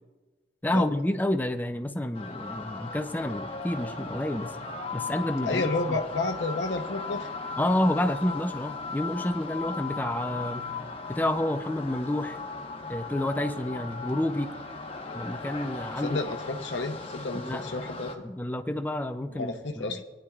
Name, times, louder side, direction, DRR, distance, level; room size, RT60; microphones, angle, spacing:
voice 1, 0.6-4.5 4.9-6.0 7.6-10.7 11.1-12.4 12.9-14.5 15.1-16.2 17.3-17.6 18.2-20.0, left 1 dB, 10° left, 8 dB, 0.5 m, -29 dB
sound 1, 2.1-18.1, left 4 dB, 30° left, 1.1 m, -37 dB
voice 2, 5.4-7.3 16.0-18.1 19.3-20.0, left 3 dB, 85° left, 4 dB, 0.8 m, -31 dB
19.5 x 10.0 x 2.4 m, 1.2 s
head